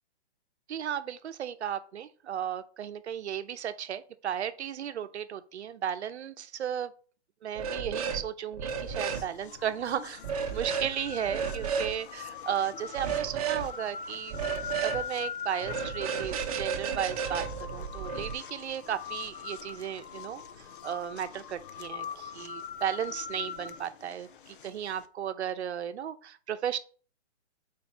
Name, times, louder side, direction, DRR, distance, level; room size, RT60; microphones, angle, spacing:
voice 1, 0.7-6.9 7.4-10.2 10.5-14.4 14.8-26.8, right 9 dB, 70° right, 0.8 m, -35 dB
sound 1, 7.6-8.2 8.5-9.2 10.2-10.9 11.3-11.9 13.0-13.7 14.3-15.0 15.6-18.3, right 6 dB, 30° right, 0.7 m, -32 dB
sound 2, 8.7-25.1, left 7 dB, 50° left, 0.6 m, -42 dB
4.5 x 4.4 x 5.8 m
hypercardioid pair, 155°, 35 cm